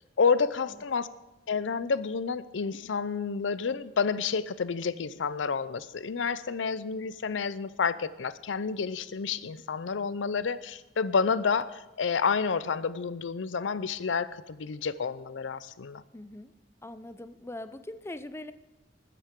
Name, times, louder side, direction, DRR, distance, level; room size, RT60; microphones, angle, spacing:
voice 1, 0.2-1.1 1.5-16.0, left 5 dB, 85° left, 16 dB, 0.6 m, -29 dB
voice 2, 16.1-16.5 16.8-18.5, left 1 dB, 15° left, 12 dB, 0.5 m, -41 dB
20.0 x 10.0 x 3.7 m, 1.1 s
head